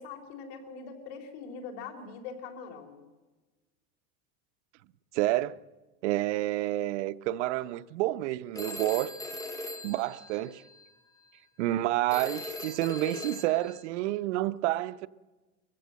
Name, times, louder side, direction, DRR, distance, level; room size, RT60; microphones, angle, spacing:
voice 1, 0.0-3.0, left 5 dB, 70° left, 4.1 m, -42 dB
voice 2, 5.1-5.6 6.0-9.2 9.8-10.6 11.6-15.1, right 16 dB, 90° right, 0.9 m, -29 dB
Telephone, 8.5-10.9 12.1-13.8, left 2 dB, 10° left, 2.2 m, -40 dB
22.5 x 15.5 x 7.6 m
supercardioid pair, 155°, 34 cm